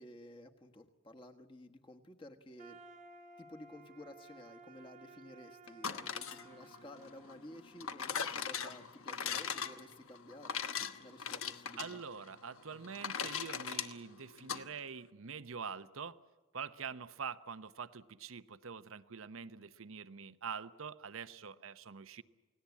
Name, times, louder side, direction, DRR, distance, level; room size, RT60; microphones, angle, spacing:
voice 1, 0.0-2.8 3.4-10.6 10.9-12.0, left 1 dB, 25° left, 4 dB, 1.4 m, -53 dB
sound 1, 2.6-8.5, right 2 dB, 35° right, 1.2 m, -57 dB
sound 2, 5.7-14.6, left 7 dB, 75° left, 1.2 m, -40 dB
voice 2, 11.8-16.2 16.5-22.2, right 6 dB, 70° right, 13 dB, 0.8 m, -45 dB
29.0 x 18.5 x 8.4 m, 1.2 s
head